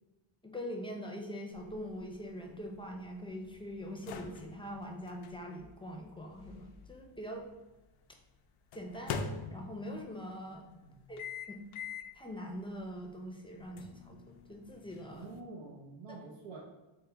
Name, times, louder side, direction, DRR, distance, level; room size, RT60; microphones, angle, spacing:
voice 1, 0.4-7.5 8.7-9.2 9.5-10.7 11.1-11.6 12.1-15.3 16.1-16.2, equal, 10° left, 2 dB, 0.5 m, -43 dB
sound 1, 1.5-7.6 8.7-10.0 11.2-12.2 12.7-12.8 13.8-15.4, left 5 dB, 80° left, 0.5 m, -44 dB
voice 2, 10.5-11.1 15.1-16.6, right 3 dB, 85° right, -5 dB, 0.8 m, -48 dB
3.6 x 2.1 x 4.3 m, 1.1 s
cardioid pair, 90°, 50 cm